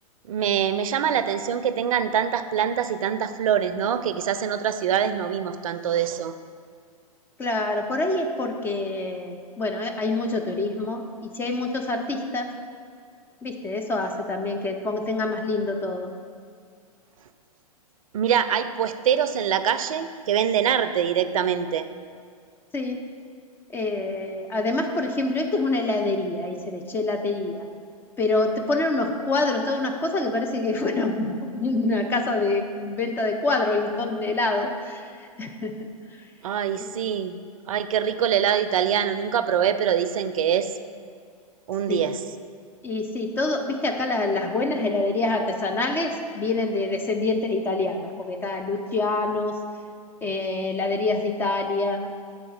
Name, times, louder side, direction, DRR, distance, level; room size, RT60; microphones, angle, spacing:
voice 1, 0.3-6.3 18.1-21.9 36.4-37.4 37.7-40.7 41.7-42.2, right 8 dB, 65° right, 11 dB, 0.4 m, -24 dB
voice 2, 7.4-12.5 13.4-16.1 22.7-23.0 23.7-27.7 28.2-36.2 36.7-36.9 41.9-42.0 42.8-49.5 50.2-52.1, left 2 dB, 10° left, 3 dB, 0.3 m, -26 dB
7.8 x 3.9 x 4.8 m, 2.1 s
hypercardioid pair, 115°, 19 cm